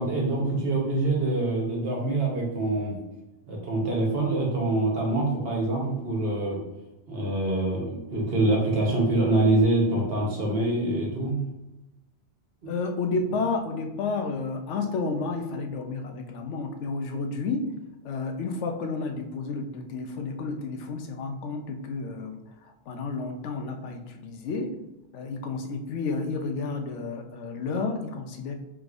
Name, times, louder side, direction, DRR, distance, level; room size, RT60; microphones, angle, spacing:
voice 1, 0.0-3.0 3.5-6.6 7.1-11.3 12.6-12.7, right 2 dB, 60° right, -2 dB, 1.2 m, -25 dB
voice 2, 12.7-17.7 18.0-22.4 22.9-24.8 25.1-28.5, left 4 dB, 90° left, 5 dB, 0.9 m, -31 dB
4.6 x 3.6 x 2.5 m, 0.96 s
omnidirectional pair, 1.2 m